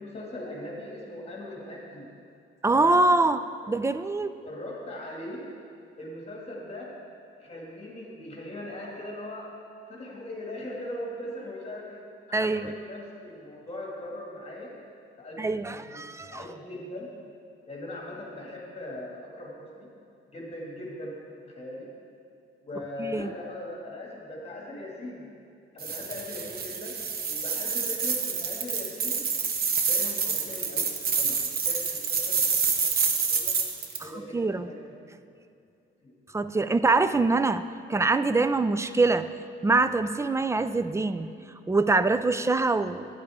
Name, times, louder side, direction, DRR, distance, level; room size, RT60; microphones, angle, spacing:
voice 1, 0.0-2.1 2.7-3.0 4.4-5.4 6.0-6.9 7.4-9.5 9.9-12.0 12.3-14.7 15.2-16.0 16.3-17.1 17.7-19.9 20.3-21.9 22.6-25.3 25.7-27.0 27.2-29.2 29.9-32.5 32.8-32.9 33.3-33.6 34.0-35.1 36.0-36.1 36.5-36.6, left 1 dB, 30° left, -3 dB, 2.3 m, -40 dB
voice 2, 2.6-3.4 3.7-4.3 12.3-12.7 15.4-16.5 23.0-23.3 34.0-34.7 36.3-37.6 37.9-39.3 39.6-41.3 41.7-43.1, right 3 dB, 15° right, 12 dB, 0.3 m, -24 dB
sound 1, 25.8-34.0, right 5 dB, 50° right, 1.0 m, -28 dB
11.5 x 9.5 x 3.6 m, 2.4 s
cardioid pair, 90°, 20 cm